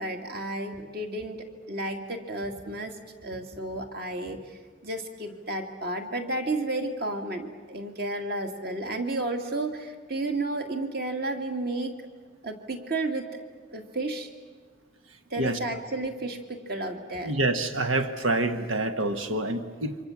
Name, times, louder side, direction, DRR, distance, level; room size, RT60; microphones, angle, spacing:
voice 1, 0.0-12.0 12.4-13.3 13.7-14.3 15.3-17.3, right 2 dB, 50° right, 4 dB, 2.4 m, -32 dB
voice 2, 17.2-20.0, right 2 dB, 85° right, 7 dB, 1.5 m, -27 dB
27.5 x 25.0 x 7.4 m, 1.5 s
head